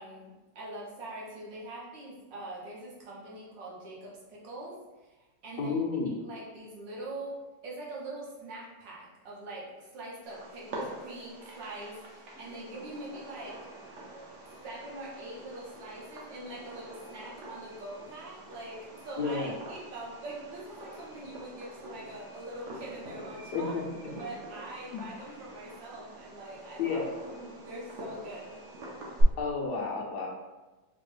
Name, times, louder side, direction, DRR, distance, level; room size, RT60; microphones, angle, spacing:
voice 1, 0.0-4.7 5.0-5.2 5.4-5.8 6.2-13.6 14.6-23.7 24.1-27.0 27.3-28.6, right 2 dB, 75° right, -5 dB, 1.6 m, -43 dB
voice 2, 5.6-6.1 19.2-19.5 23.5-23.8 24.9-25.0 26.8-27.1 29.4-30.3, left 4 dB, 70° left, -1 dB, 1.1 m, -31 dB
Fireworks, 10.2-29.2, right 1 dB, 60° right, 0.8 m, -44 dB
4.5 x 2.2 x 3.2 m, 1.1 s
omnidirectional pair, 2.0 m